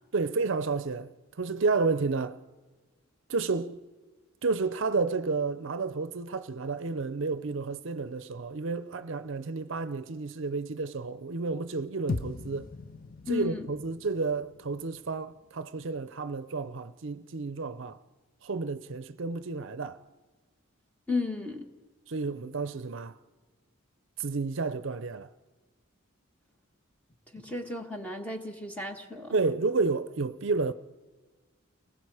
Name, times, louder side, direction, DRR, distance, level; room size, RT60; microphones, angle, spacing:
voice 1, 0.1-1.1 1.4-2.4 3.3-3.8 4.4-12.7 13.3-18.0 18.4-20.0 22.1-23.2 24.2-25.3 29.3-30.7, right 4 dB, 60° right, 0.6 m, -31 dB
sound 1, 12.1-16.4, left 3 dB, 40° left, 0.6 m, -40 dB
voice 2, 13.3-13.7 21.1-21.7 27.3-29.4, left 3 dB, 5° left, 1.5 m, -34 dB
30.0 x 20.0 x 4.9 m
head